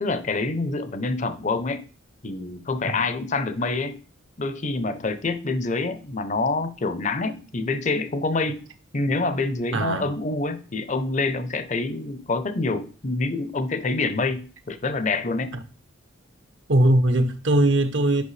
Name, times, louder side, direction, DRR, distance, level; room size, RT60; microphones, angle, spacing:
voice 1, 0.0-1.8 2.2-4.0 4.4-8.6 8.9-15.6, left 3 dB, 35° left, 0.6 m, -26 dB
voice 2, 9.7-10.1 16.7-18.2, right 1 dB, 60° right, 0.7 m, -20 dB
8.3 x 5.5 x 3.2 m
head